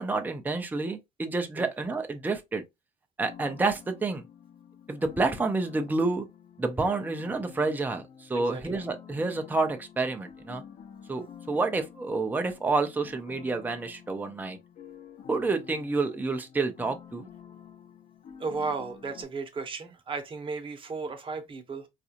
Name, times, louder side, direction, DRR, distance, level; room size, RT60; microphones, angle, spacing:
voice 1, 0.0-2.6 3.2-4.2 4.9-6.3 6.6-10.6 11.1-14.6 15.3-17.3, right 3 dB, 10° right, 0.5 m, -29 dB
sound 1, 3.3-19.2, left 8 dB, 45° left, 0.7 m, -49 dB
voice 2, 8.3-8.8 18.4-21.9, right 4 dB, 30° right, 0.9 m, -35 dB
3.9 x 2.5 x 2.8 m
cardioid pair, 110°, 17 cm